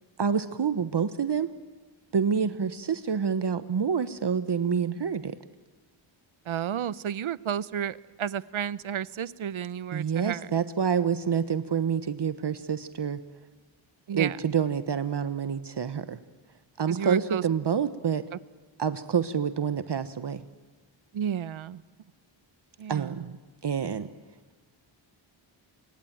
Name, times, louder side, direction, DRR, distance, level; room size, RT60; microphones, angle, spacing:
voice 1, 0.2-1.5 2.1-5.3 9.9-13.2 14.1-16.2 16.8-18.2 18.8-20.4 22.9-23.4 23.6-24.1, right 7 dB, 55° right, 12 dB, 1.3 m, -27 dB
voice 2, 6.5-10.5 14.1-14.4 16.9-17.4 21.1-21.8 22.8-23.3, right 9 dB, 75° right, 18 dB, 0.9 m, -32 dB
26.5 x 24.0 x 8.9 m, 1.3 s
wide cardioid pair, 80°, 49 cm